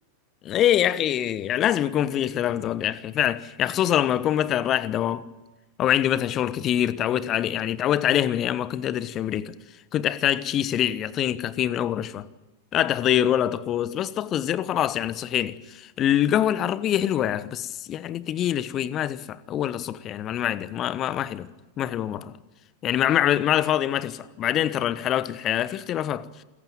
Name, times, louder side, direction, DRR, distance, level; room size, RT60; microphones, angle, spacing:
voice 1, 0.4-5.2 5.8-9.6 9.9-12.3 12.7-21.5 21.8-22.4 22.8-26.4, left 11 dB, 30° left, 1.0 m, -24 dB
27.5 x 15.0 x 9.2 m
figure-of-eight pair, 90°, 0 cm